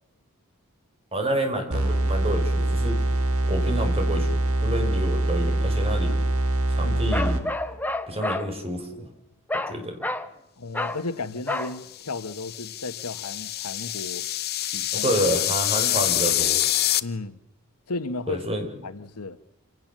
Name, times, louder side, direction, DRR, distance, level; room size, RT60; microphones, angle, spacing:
voice 1, 1.1-3.0 3.4-4.3 4.6-6.2 6.7-7.4 8.1-9.1 9.7-10.0 14.9-16.6 18.3-18.7, equal, 25° right, 5.7 m, -28 dB
sound 1, 1.7-7.8, right 1 dB, 70° right, 2.6 m, -24 dB
Bark, 7.1-8.5 9.5-9.8 10.0-10.3 10.7-11.0 11.5-11.7, left 1 dB, 10° left, 1.1 m, -29 dB
voice 2, 10.6-14.3 14.6-15.1 17.0-17.4 17.9-18.5 18.8-19.4, left 3 dB, 90° left, 1.3 m, -34 dB
sound 2, 11.9-17.0, left 13 dB, 45° left, 0.8 m, -26 dB
27.5 x 18.0 x 7.5 m
head